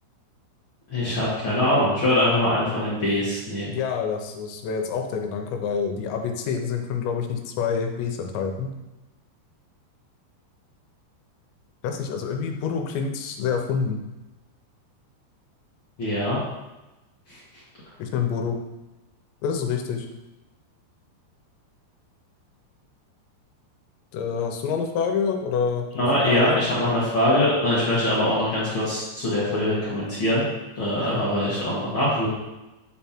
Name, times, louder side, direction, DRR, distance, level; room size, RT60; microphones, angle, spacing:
voice 1, 0.9-3.7 16.0-16.4 26.0-30.4 30.8-32.3, left 1 dB, 60° left, -9 dB, 1.3 m, -23 dB
voice 2, 3.7-8.7 11.8-14.0 18.0-18.6 19.4-20.1 24.1-26.6 31.0-31.2, left 6 dB, 85° left, 4 dB, 3.0 m, -27 dB
9.6 x 3.5 x 4.3 m, 1.0 s
omnidirectional pair, 5.0 m